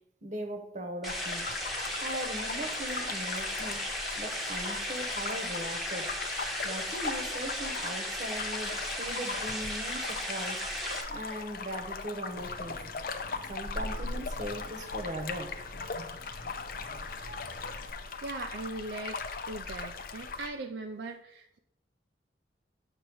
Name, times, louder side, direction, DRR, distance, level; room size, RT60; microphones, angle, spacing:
voice 1, 0.2-1.5 2.0-3.9 4.2-6.1 6.6-10.6 11.1-12.8 13.5-15.5, right 1 dB, 40° right, 5 dB, 1.0 m, -39 dB
sound 1, 1.0-11.0, equal, ahead, 1.0 m, -36 dB
sound 2, 1.1-20.5, left 4 dB, 50° left, 0.6 m, -39 dB
sound 3, 12.3-17.9, equal, 80° left, 0.8 m, -43 dB
voice 2, 18.2-19.2 19.5-21.6, right 3 dB, 60° right, 4 dB, 0.4 m, -39 dB
8.5 x 3.0 x 6.1 m, 0.78 s
head